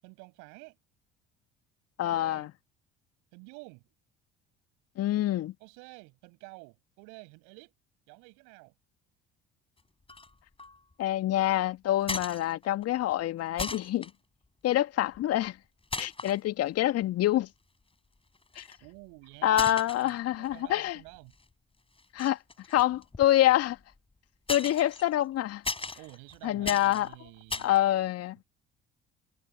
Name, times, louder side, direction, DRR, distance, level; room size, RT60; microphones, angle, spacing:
voice 1, 0.0-0.8 2.0-2.5 3.3-3.9 5.6-7.7 8.1-8.7 18.8-21.3 26.0-27.7, right 34 dB, 65° right, 5.5 m, -50 dB
voice 2, 2.0-2.5 5.0-5.5 11.0-14.1 14.6-15.6 16.0-17.5 18.6-18.7 19.4-21.0 22.1-22.4 22.7-23.8 24.5-25.6 26.4-27.1 27.6-28.4, left 13 dB, 50° left, 2.1 m, -26 dB
sound 1, 10.1-10.3 10.6-10.9 12.0-12.8 13.1-13.2 13.6-14.1 15.1-15.5 15.9-16.4 17.0-17.1 18.4-18.9 19.5-20.7 21.1-21.4 22.0-23.9 24.5-27.8, left 3 dB, 15° left, 6.8 m, -37 dB
figure-of-eight pair, 55°, 32 cm